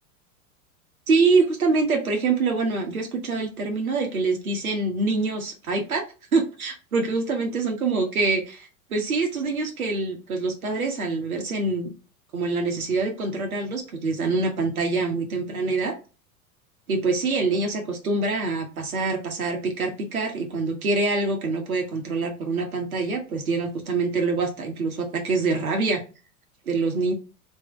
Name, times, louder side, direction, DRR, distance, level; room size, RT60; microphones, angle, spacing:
voice 1, 1.1-6.0 6.3-11.9 12.3-15.9 16.9-26.0 26.7-27.1, right 3 dB, 70° right, 2 dB, 1.3 m, -25 dB
3.6 x 3.3 x 4.4 m, 0.33 s
figure-of-eight pair, 85°, 44 cm